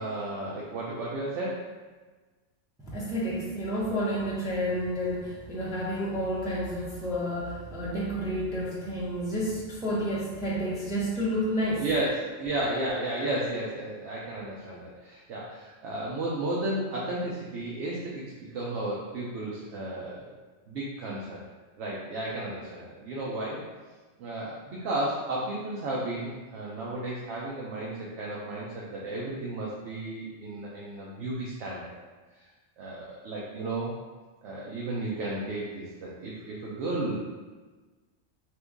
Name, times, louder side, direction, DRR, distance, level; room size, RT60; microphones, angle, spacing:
voice 1, 0.0-1.6 11.8-20.3 20.7-21.4 21.8-23.6 24.2-31.9 32.3-32.4 32.8-34.0 34.4-37.3, right 1 dB, 70° right, -5 dB, 0.8 m, -33 dB
voice 2, 2.9-11.8, equal, 5° right, -6 dB, 0.3 m, -30 dB
2.9 x 2.5 x 3.5 m, 1.3 s
omnidirectional pair, 1.3 m